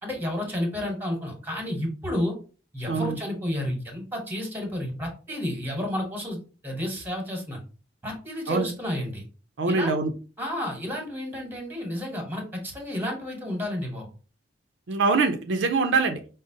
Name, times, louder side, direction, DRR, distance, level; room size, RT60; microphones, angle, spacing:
voice 1, 0.0-2.3 2.7-7.6 8.0-9.2 9.6-10.0 10.4-14.1, left 1 dB, 10° right, 1 dB, 1.0 m, -31 dB
voice 2, 2.9-3.2 8.5-8.7 9.6-10.1 14.9-16.2, right 4 dB, 75° right, 6 dB, 0.5 m, -23 dB
5.0 x 2.0 x 2.6 m, 0.36 s
head